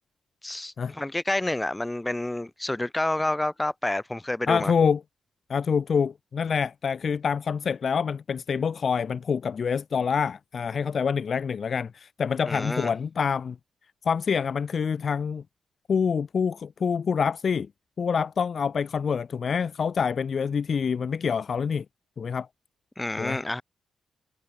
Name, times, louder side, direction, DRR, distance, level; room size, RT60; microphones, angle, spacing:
voice 1, 0.4-4.7 12.5-12.9 23.0-23.6, left 1 dB, 10° left, 5.5 m, -29 dB
voice 2, 4.5-5.0 5.5-13.6 14.0-15.4 15.9-17.7 18.0-21.8 22.2-22.5 23.2-23.4, left 6 dB, 40° left, 1.1 m, -26 dB
wide cardioid pair, 175°, 0 cm